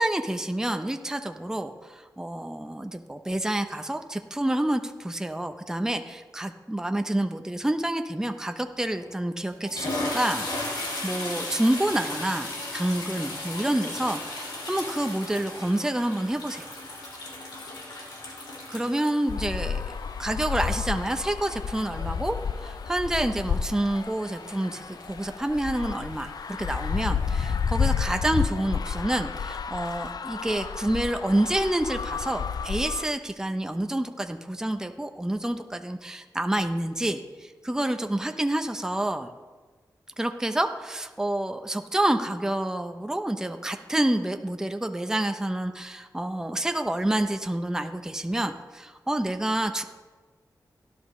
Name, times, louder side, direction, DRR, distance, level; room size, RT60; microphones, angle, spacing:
voice 1, 0.0-10.4 11.0-16.7 18.7-19.9 20.2-39.3 40.2-49.8, right 1 dB, 10° right, 6 dB, 0.6 m, -28 dB
sound 1, 8.9-9.1 9.5-27.7, left 1 dB, 85° left, 2.8 m, -38 dB
sound 2, 19.3-33.1, left 6 dB, 65° left, 0.4 m, -31 dB
17.0 x 11.0 x 3.2 m, 1.3 s
wide cardioid pair, 95°, 7 cm